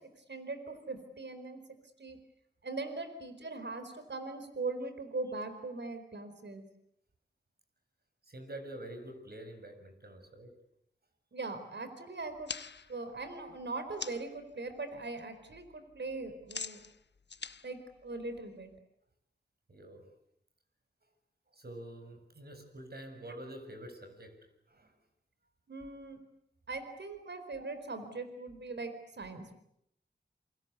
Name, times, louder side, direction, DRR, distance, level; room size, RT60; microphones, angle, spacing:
voice 1, 0.0-1.6 2.0-2.2 2.6-6.7 11.3-12.5 12.9-16.8 17.6-18.7 25.7-26.2 26.7-29.6, right 3 dB, 75° right, 8 dB, 4.4 m, -40 dB
voice 2, 8.2-10.5 19.7-20.1 21.5-24.4 24.7-24.9, right 1 dB, 60° right, 7 dB, 7.0 m, -47 dB
sound 1, 12.2-14.4 14.8-15.2 15.5-18.7, left 5 dB, 70° left, 1.1 m, -45 dB
28.0 x 25.5 x 8.2 m, 0.76 s
cardioid pair, 45°, 18 cm